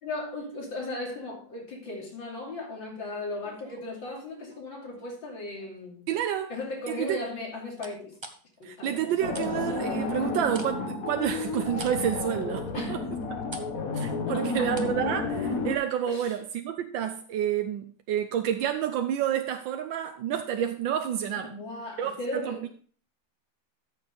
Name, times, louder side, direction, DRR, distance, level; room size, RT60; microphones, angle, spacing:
voice 1, 0.0-6.1 6.5-8.2 8.6-9.4 12.7-13.1 14.3-14.8 16.1-16.4 21.4-22.7, left 2 dB, 90° left, 3.6 m, -37 dB
sound 1, 3.4-5.1 5.6-6.0 7.8-9.5 9.8-15.0 15.3-15.4, right 3 dB, 25° right, 0.7 m, -46 dB
voice 2, 6.1-6.5 6.9-7.2 8.6-13.0 13.9-21.5 22.0-22.6, right 10 dB, 85° right, 1.5 m, -29 dB
sound 2, 9.2-15.8, left 3 dB, 50° left, 1.6 m, -31 dB
13.0 x 7.1 x 3.5 m
omnidirectional pair, 2.0 m